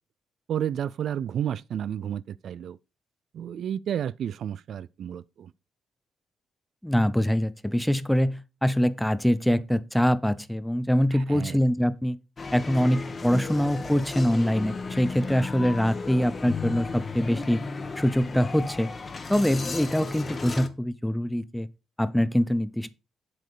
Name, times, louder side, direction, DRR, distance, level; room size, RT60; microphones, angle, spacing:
voice 1, 0.5-2.8 3.3-5.5 11.1-11.6 15.6-15.7, right 9 dB, 65° right, 0.4 m, -31 dB
voice 2, 6.8-12.2 12.5-17.6 18.0-18.9 19.3-21.7 22.0-22.9, equal, 5° left, 0.7 m, -24 dB
sound 1, 12.4-20.7, left 4 dB, 30° left, 1.3 m, -35 dB
7.8 x 7.6 x 5.0 m
cardioid pair, 115°, 0 cm